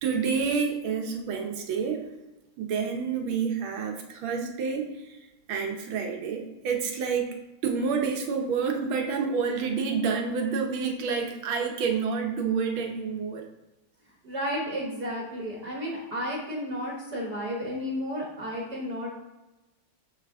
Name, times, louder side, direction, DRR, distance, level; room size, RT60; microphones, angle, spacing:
voice 1, 0.0-2.0 2.6-5.2 5.5-7.4 7.6-13.5, right 5 dB, 75° right, 3 dB, 1.7 m, -28 dB
voice 2, 14.2-19.1, equal, 55° right, -3 dB, 1.6 m, -32 dB
7.3 x 5.9 x 3.5 m, 1.0 s
omnidirectional pair, 2.3 m